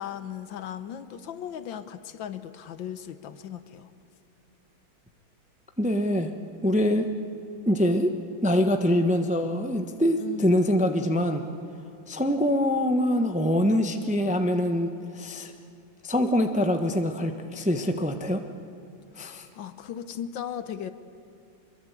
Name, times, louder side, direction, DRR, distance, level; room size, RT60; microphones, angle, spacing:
voice 1, 0.0-3.9 10.2-10.6 19.1-20.9, left 9 dB, 70° left, 12 dB, 1.6 m, -37 dB
voice 2, 5.8-6.3 6.6-7.1 7.6-8.1 8.4-11.4 12.1-15.5 16.0-18.4 19.2-19.5, equal, 5° right, 6 dB, 0.7 m, -24 dB
24.5 x 22.0 x 8.2 m, 2.5 s
omnidirectional pair, 2.2 m